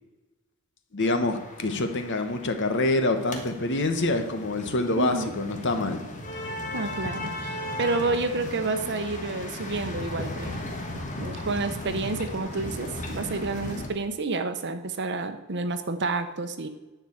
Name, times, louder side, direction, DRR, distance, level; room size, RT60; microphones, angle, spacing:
voice 1, 0.9-6.1, left 2 dB, 55° left, 7 dB, 1.1 m, -26 dB
sound 1, 1.0-13.9, left 1 dB, 35° left, 1.5 m, -36 dB
voice 2, 5.0-5.3 6.7-10.6 11.2-16.7, right 3 dB, 50° right, 9 dB, 0.9 m, -29 dB
10.5 x 4.8 x 7.9 m, 1.1 s
head